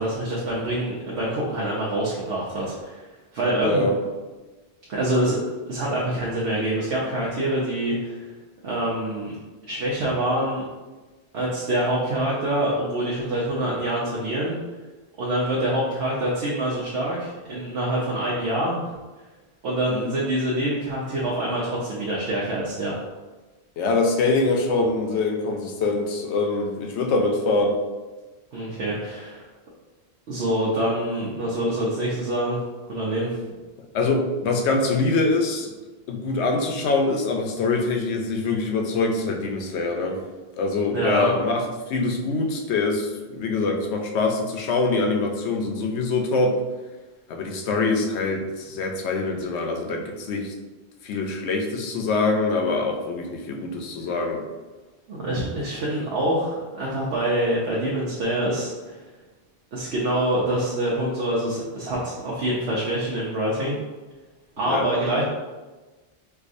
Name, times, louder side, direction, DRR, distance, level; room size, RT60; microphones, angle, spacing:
voice 1, 0.0-3.0 3.3-3.9 4.9-5.4 5.7-8.3 8.6-9.3 9.7-10.6 11.3-14.6 15.2-18.8 19.6-23.0 24.7-24.8 28.5-29.5 30.3-32.6 32.9-33.4 40.9-41.3 55.1-59.0 59.7-63.7 64.6-65.2, right 1 dB, 75° right, -6 dB, 0.9 m, -25 dB
voice 2, 3.4-4.0 19.9-20.1 23.8-27.8 33.9-35.7 36.1-40.2 40.6-46.5 47.3-50.5 51.0-54.4 64.7-64.9, left 3 dB, 85° left, 3 dB, 0.9 m, -24 dB
4.6 x 2.3 x 2.5 m, 1.2 s
omnidirectional pair, 1.1 m